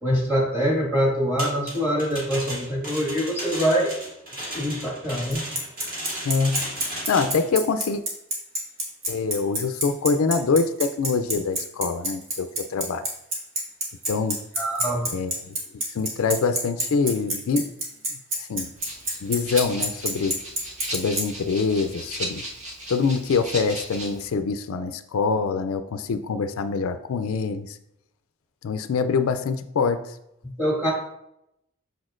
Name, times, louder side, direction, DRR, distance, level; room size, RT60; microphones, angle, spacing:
voice 1, 0.0-3.9 4.5-5.5 14.6-15.2 30.6-30.9, equal, 10° right, -4 dB, 1.7 m, -24 dB
sound 1, 1.4-7.5, right 1 dB, 40° right, 2.0 m, -35 dB
Bicycle, 5.3-21.2, right 1 dB, 60° right, 1.9 m, -26 dB
voice 2, 6.2-6.7 7.1-8.0 9.1-13.1 14.1-14.4 15.1-15.6 15.9-17.8 18.4-18.7 19.2-20.4 20.9-22.4 22.9-27.8 28.6-30.1, left 4 dB, 75° left, 10 dB, 0.4 m, -25 dB
Rattle (instrument), 18.8-24.3, equal, 75° right, 1.7 m, -36 dB
6.8 x 6.2 x 2.5 m, 0.81 s
head